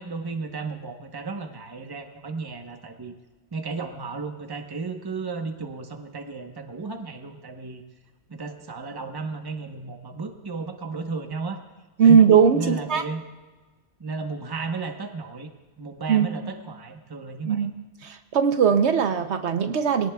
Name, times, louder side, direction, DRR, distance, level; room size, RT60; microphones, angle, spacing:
voice 1, 0.0-3.1 3.5-7.8 8.3-11.6 12.0-12.2 12.5-13.2 14.0-15.5 15.8-17.7, right 4 dB, 20° right, 5 dB, 0.9 m, -34 dB
voice 2, 12.0-13.0 16.1-16.3 17.4-17.7 18.0-20.1, right 7 dB, 70° right, 8 dB, 1.0 m, -19 dB
21.5 x 17.5 x 2.3 m, 1.3 s
omnidirectional pair, 1.2 m